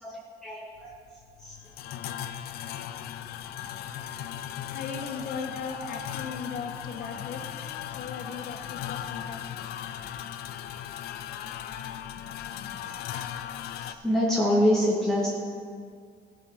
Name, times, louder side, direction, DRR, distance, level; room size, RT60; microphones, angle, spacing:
voice 1, 0.0-0.9 1.4-1.5 7.0-7.1 13.6-15.3, equal, 5° left, -6 dB, 2.1 m, -26 dB
sound 1, 0.8-13.9, left 10 dB, 80° left, 0.6 m, -38 dB
voice 2, 3.4-3.9 4.7-7.6 7.9-9.6 12.2-13.1, left 5 dB, 65° left, 4 dB, 1.4 m, -39 dB
14.5 x 6.7 x 5.7 m, 2.1 s
cardioid pair, 95°, 16 cm